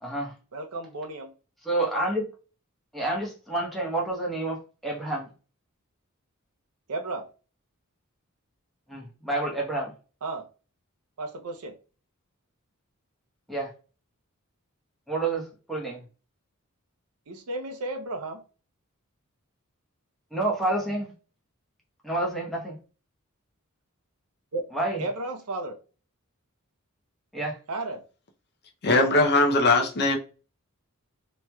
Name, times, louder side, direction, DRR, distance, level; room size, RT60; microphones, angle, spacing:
voice 1, 0.0-0.3 1.6-2.3 2.9-5.3 8.9-9.9 13.5-13.7 15.1-16.0 20.3-21.1 22.0-22.8 24.7-25.0 27.3-27.6, right 2 dB, ahead, 0.9 m, -29 dB
voice 2, 0.5-1.3 6.9-7.3 10.2-10.5 11.2-11.8 17.3-18.4 24.5-24.6 25.0-25.8 27.7-28.0, right 2 dB, 85° right, 0.6 m, -33 dB
voice 3, 28.8-30.2, left 2 dB, 50° left, 0.6 m, -20 dB
3.0 x 2.8 x 2.2 m
head